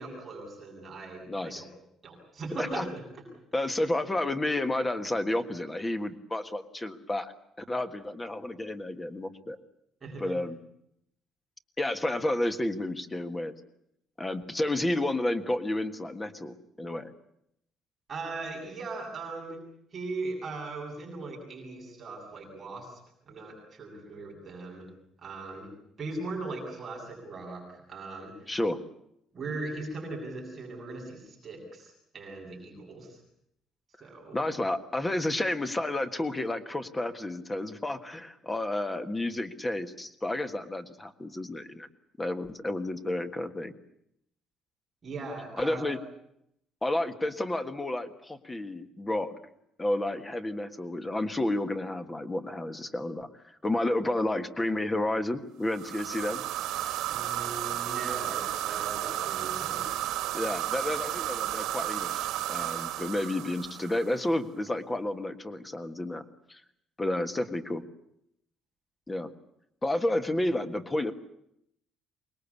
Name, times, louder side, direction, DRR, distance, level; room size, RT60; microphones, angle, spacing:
voice 1, 0.0-1.7 2.0-2.8 10.0-10.4 18.1-19.6 19.9-23.0 23.3-24.9 25.2-25.7 26.0-28.5 29.3-33.2 34.0-34.4 45.0-46.0 57.1-59.9, right 3 dB, 20° right, -2 dB, 7.7 m, -39 dB
voice 2, 1.3-1.7 2.6-2.9 3.5-7.3 7.7-9.6 10.2-10.6 11.8-13.5 14.2-17.1 28.5-28.8 34.3-41.9 42.2-43.7 45.6-46.0 46.8-49.3 49.8-53.3 53.6-56.4 60.3-66.2 66.5-66.6 67.0-67.8 69.1-69.3 69.8-71.1, left 1 dB, 10° left, 8 dB, 1.6 m, -31 dB
sound 1, 55.7-64.2, right 13 dB, 90° right, 1.7 m, -33 dB
25.5 x 21.0 x 8.4 m, 0.76 s
cardioid pair, 170°, 0 cm